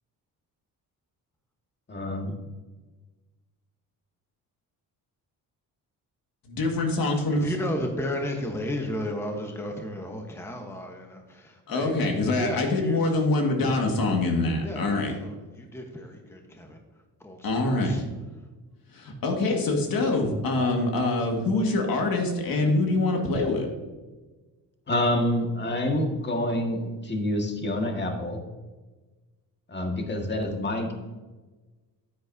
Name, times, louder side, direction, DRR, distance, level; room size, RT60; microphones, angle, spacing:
voice 1, 1.9-2.3 24.9-28.4 29.7-30.9, left 1 dB, 30° left, 2 dB, 1.8 m, -27 dB
voice 2, 6.5-7.5 11.7-15.1 17.4-18.0 18.9-23.7, left 2 dB, 65° left, 2 dB, 1.9 m, -25 dB
voice 3, 7.3-11.9 12.4-13.2 14.6-16.8 17.2-18.0, left 1 dB, 5° left, 3 dB, 1.1 m, -34 dB
9.5 x 9.1 x 2.7 m, 1.2 s
cardioid pair, 95°, 37 cm